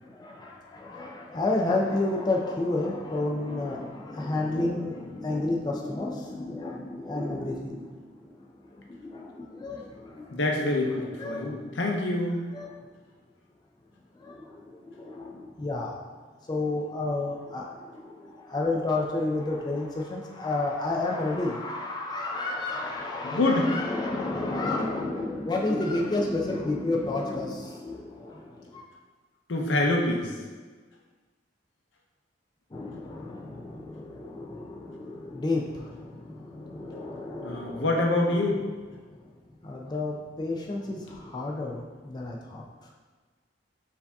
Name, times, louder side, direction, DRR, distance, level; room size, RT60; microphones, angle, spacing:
voice 1, 0.0-10.4 11.2-11.7 12.5-12.7 14.2-16.0 16.5-28.8 32.7-37.9 39.6-42.6, left 2 dB, 25° left, -1 dB, 0.4 m, -31 dB
voice 2, 10.3-12.4 23.2-23.7 29.5-30.3 37.4-38.6, left 2 dB, 80° left, 0 dB, 0.7 m, -26 dB
4.6 x 2.7 x 3.4 m, 1.4 s
head